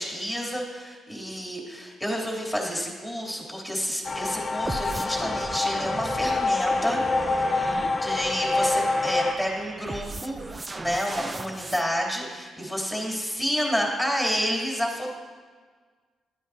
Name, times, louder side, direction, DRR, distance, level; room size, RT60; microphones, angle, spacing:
voice 1, 0.0-7.0 7.5-15.1, equal, ahead, -3 dB, 3.0 m, -30 dB
sound 1, 4.1-9.3, left 3 dB, 35° left, 0.6 m, -26 dB
sound 2, 4.6-11.8, right 2 dB, 25° right, 0.5 m, -37 dB
12.5 x 9.4 x 2.8 m, 1.5 s
supercardioid pair, 55°, 0 cm